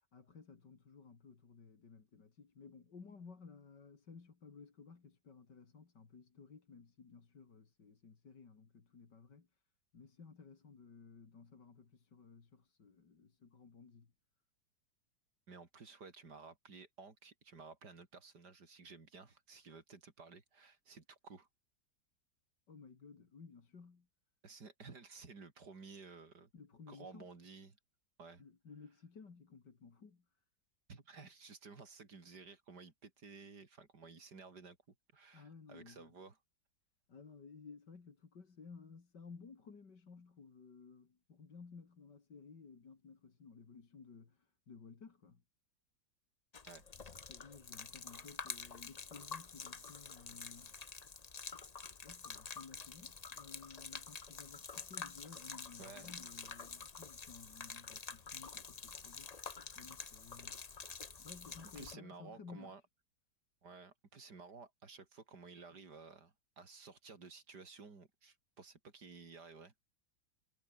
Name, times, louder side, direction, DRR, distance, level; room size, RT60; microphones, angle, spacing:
voice 1, 0.1-9.5 9.9-14.1 22.7-24.1 26.5-27.3 28.4-30.2 35.3-36.1 37.1-45.4 47.3-50.8 51.9-60.6 61.2-62.7, left 5 dB, 70° left, 3.3 m, -56 dB
voice 2, 15.5-21.5 24.4-26.5 26.9-27.8 28.2-28.4 30.9-34.8 35.1-36.4 46.7-47.1 55.8-56.2 61.8-62.8 63.6-69.7, right 4 dB, 65° right, 3.5 m, -54 dB
Gurgling / Liquid, 46.5-61.9, left 5 dB, 30° left, 0.8 m, -48 dB
omnidirectional pair, 1.9 m